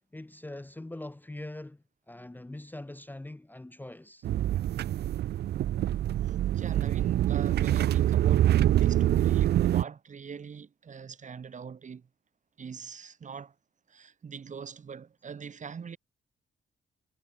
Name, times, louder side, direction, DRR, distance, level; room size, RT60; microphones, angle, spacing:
voice 1, 0.1-4.3, left 1 dB, 10° left, 0.9 m, -43 dB
sound 1, 4.2-9.8, right 12 dB, 55° right, 0.4 m, -25 dB
voice 2, 6.2-12.1 12.6-13.5 13.9-16.0, right 6 dB, 40° right, 1.4 m, -43 dB
cardioid pair, 90°, 20 cm